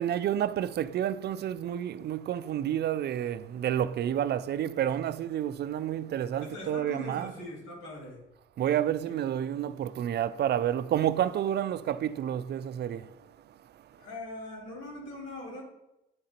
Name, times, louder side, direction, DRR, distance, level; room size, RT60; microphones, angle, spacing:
voice 1, 0.0-7.3 8.6-13.1, right 10 dB, 55° right, 0.4 m, -29 dB
voice 2, 6.4-8.2 9.0-9.2 14.0-15.6, left 2 dB, 85° left, 2.6 m, -42 dB
10.0 x 3.8 x 4.3 m
cardioid pair, 90°, 20 cm